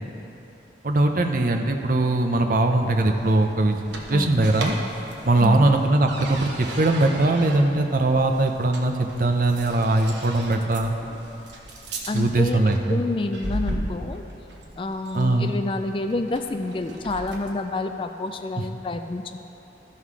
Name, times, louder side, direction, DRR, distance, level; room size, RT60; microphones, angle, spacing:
voice 1, 0.8-3.8 4.1-4.8 5.2-10.9 12.1-13.0 15.1-15.6 18.6-18.7, right 2 dB, 50° right, 4 dB, 0.6 m, -21 dB
sound 1, 2.6-17.6, right 1 dB, 85° right, 1.1 m, -37 dB
voice 2, 5.4-5.7 12.1-14.2 14.8-19.4, left 2 dB, 30° left, 7 dB, 0.3 m, -28 dB
13.5 x 5.7 x 4.8 m, 3.0 s
head